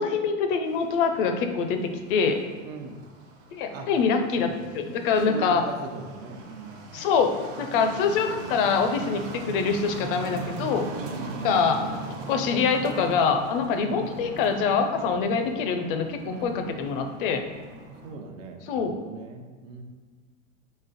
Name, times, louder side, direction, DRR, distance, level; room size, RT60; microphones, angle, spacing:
voice 1, 0.0-2.4 3.5-5.6 6.9-7.3 7.6-10.9 11.4-11.9 12.3-17.4 18.7-19.0, left 5 dB, 45° left, 6 dB, 0.5 m, -25 dB
sound 1, 0.7-18.1, right 2 dB, 35° right, 0.6 m, -40 dB
voice 2, 2.6-3.0 3.7-3.9 4.4-7.0 11.0-11.9 13.8-14.1 16.2-17.2 18.0-19.8, right 4 dB, 80° right, 3 dB, 0.7 m, -40 dB
4.0 x 3.1 x 4.0 m, 1.5 s
supercardioid pair, 140°, 38 cm